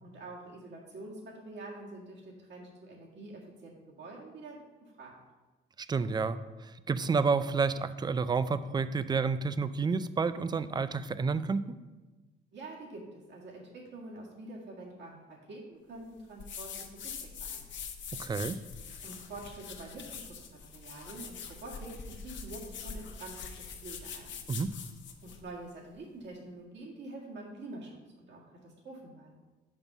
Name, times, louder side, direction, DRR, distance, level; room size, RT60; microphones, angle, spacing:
voice 1, 0.0-5.1 12.5-15.2 15.5-17.6 19.0-24.4 25.2-29.4, right 2 dB, 65° right, -3 dB, 1.8 m, -46 dB
voice 2, 5.9-11.8 18.2-18.6 24.5-24.7, right 4 dB, 20° right, 13 dB, 0.3 m, -30 dB
sound 1, 16.4-25.4, left 6 dB, 70° left, 0.9 m, -44 dB
5.4 x 5.4 x 6.0 m, 1.2 s
cardioid pair, 90°, 20 cm